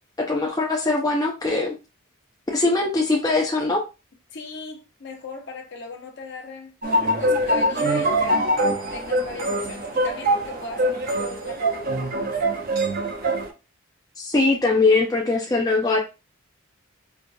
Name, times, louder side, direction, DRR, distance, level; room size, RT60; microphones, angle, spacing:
voice 1, 0.2-1.7 2.5-3.8 14.2-16.0, left 3 dB, 15° left, 0.5 m, -21 dB
voice 2, 4.3-6.7 7.1-8.5 8.9-12.4, left 3 dB, 55° left, 0.9 m, -38 dB
sound 1, 6.8-13.5, right 1 dB, 40° right, 0.6 m, -23 dB
4.5 x 2.4 x 2.5 m
head